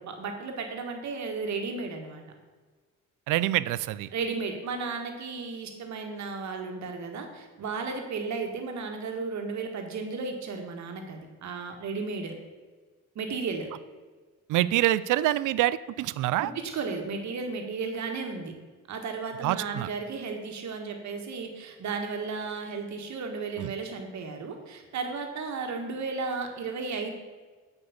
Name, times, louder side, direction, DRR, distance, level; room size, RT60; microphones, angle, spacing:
voice 1, 0.0-2.2 4.1-12.3 13.2-13.7 16.4-18.5 18.9-27.1, right 4 dB, 65° right, 4 dB, 1.7 m, -34 dB
voice 2, 3.3-4.1 14.5-16.5 19.4-19.9 23.6-23.7, right 15 dB, 85° right, 17 dB, 0.5 m, -26 dB
7.8 x 5.3 x 7.2 m, 1.4 s
cardioid pair, 90°, 30 cm